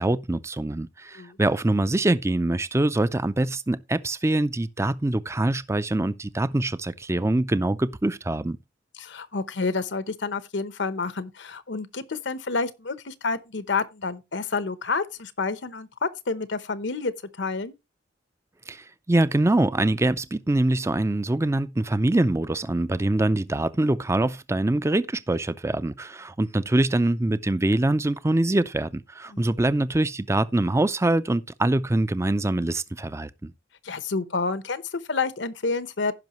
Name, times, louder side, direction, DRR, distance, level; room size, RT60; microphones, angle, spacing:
voice 1, 0.0-8.6 18.7-33.5, right 2 dB, 15° right, 0.4 m, -24 dB
voice 2, 8.9-17.7 29.3-29.5 33.8-36.1, left 4 dB, 70° left, 0.9 m, -29 dB
16.0 x 5.7 x 3.0 m
head